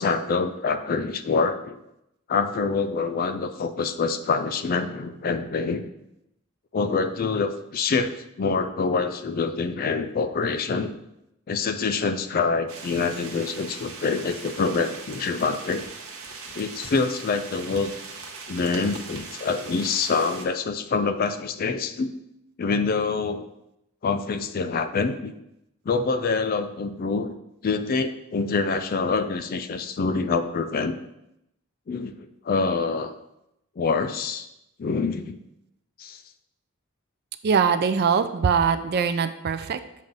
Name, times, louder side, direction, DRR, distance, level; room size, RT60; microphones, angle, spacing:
voice 1, 0.0-1.8 2.3-5.9 6.7-8.1 8.4-11.0 11.5-15.8 16.6-17.9 18.5-22.1 22.6-23.5 24.0-25.4 25.9-27.3 27.6-31.0 31.9-32.1 32.5-33.1 33.8-34.5 34.8-35.4 36.0-36.2, left 4 dB, 40° left, 9 dB, 0.4 m, -26 dB
sound 1, 12.7-20.4, right 4 dB, 65° right, 0.9 m, -40 dB
voice 2, 37.4-39.8, right 6 dB, 45° right, 10 dB, 0.3 m, -22 dB
7.3 x 2.6 x 5.3 m, 0.83 s
head